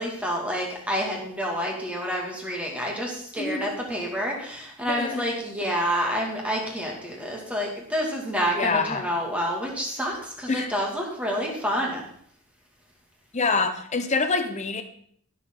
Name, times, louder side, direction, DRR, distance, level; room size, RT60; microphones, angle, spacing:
voice 1, 0.0-12.0, equal, 5° right, -2 dB, 2.2 m, -28 dB
voice 2, 3.4-3.8 4.9-5.2 8.5-9.0 10.5-10.7 13.3-14.8, left 4 dB, 30° left, 7 dB, 1.0 m, -26 dB
15.5 x 6.9 x 3.8 m, 0.64 s
head